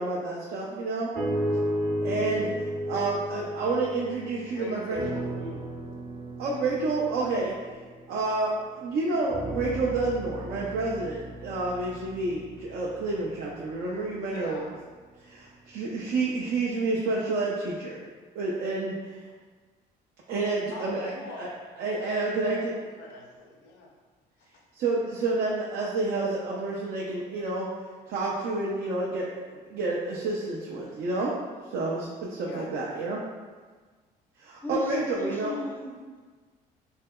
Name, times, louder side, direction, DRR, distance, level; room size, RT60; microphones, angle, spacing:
voice 1, 0.0-1.1 2.0-5.1 6.4-7.5 8.1-14.7 15.2-18.0 18.3-19.2 20.3-21.1 21.4-21.5 21.8-22.7 24.7-27.7 28.1-29.4 29.7-31.3 31.7-33.2 34.4-35.6, right 3 dB, 65° right, -5 dB, 0.5 m, -29 dB
sound 1, 1.1-4.5 4.9-8.6 9.3-13.5 14.2-14.3, equal, 40° right, 0.9 m, -34 dB
voice 2, 4.5-5.7 14.2-14.7 20.7-21.5 22.0-23.9 24.4-24.6 32.3-32.7 34.9-35.0, left 2 dB, 80° left, 0 dB, 0.6 m, -43 dB
voice 3, 34.6-36.2, equal, 10° left, 0 dB, 0.4 m, -36 dB
3.2 x 2.7 x 2.2 m, 1.4 s
cardioid pair, 110°, 17 cm